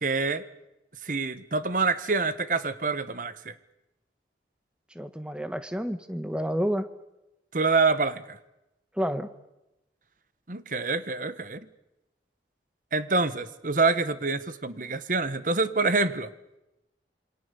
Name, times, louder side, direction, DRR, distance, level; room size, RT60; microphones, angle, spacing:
voice 1, 0.0-0.4 1.0-3.5 7.5-8.4 10.5-11.7 12.9-16.3, right 3 dB, 50° right, 13 dB, 1.3 m, -26 dB
voice 2, 4.9-6.9 9.0-9.3, equal, 5° right, 10 dB, 1.3 m, -29 dB
27.5 x 24.0 x 7.0 m, 0.93 s
head